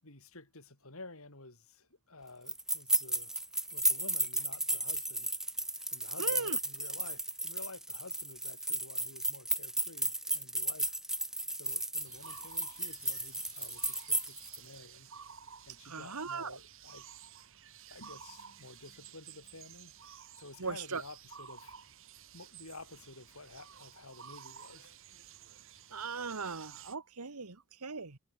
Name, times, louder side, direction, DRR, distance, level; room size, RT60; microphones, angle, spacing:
voice 1, 0.0-3.4 3.7-5.4 5.9-11.0 11.6-15.1 15.6-17.3 17.9-20.1 20.3-21.8 22.3-25.0, left 2 dB, 65° left, 6.1 m, -52 dB
sound 1, 2.5-14.6, right 1 dB, ahead, 0.4 m, -34 dB
voice 2, 6.2-6.6 15.8-16.6 20.6-21.0 25.9-28.2, right 4 dB, 90° right, 1.7 m, -39 dB
sound 2, 12.1-27.0, right 8 dB, 60° right, 7.0 m, -53 dB
head